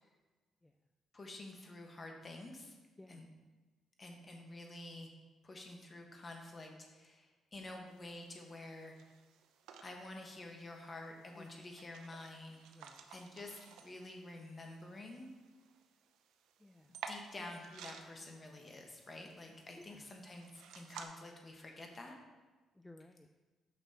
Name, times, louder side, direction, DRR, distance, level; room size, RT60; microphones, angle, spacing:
voice 1, 1.1-2.7 3.1-3.3 4.0-5.1 5.4-9.0 9.8-12.6 13.1-15.3 17.1-22.2, left 2 dB, 30° left, 2 dB, 1.3 m, -49 dB
sound 1, 7.9-21.1, right 7 dB, 90° right, 0.5 m, -55 dB
voice 2, 11.4-11.7 12.7-13.1 16.6-17.0 19.8-20.1 22.7-23.3, left 1 dB, 10° left, 6 dB, 0.3 m, -57 dB
9.0 x 5.9 x 2.8 m, 1.3 s
cardioid pair, 90°, 0 cm